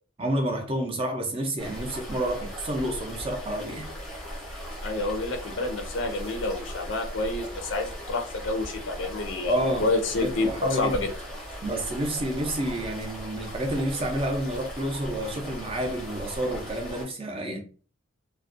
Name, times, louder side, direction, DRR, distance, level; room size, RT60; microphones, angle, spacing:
voice 1, 0.2-3.9 9.5-9.9 10.2-11.0 11.6-17.6, right 1 dB, 25° right, 0.5 m, -29 dB
sound 1, 1.6-17.0, equal, ahead, 0.8 m, -38 dB
voice 2, 4.8-11.1, left 2 dB, 60° left, 0.5 m, -28 dB
2.4 x 2.1 x 2.5 m
head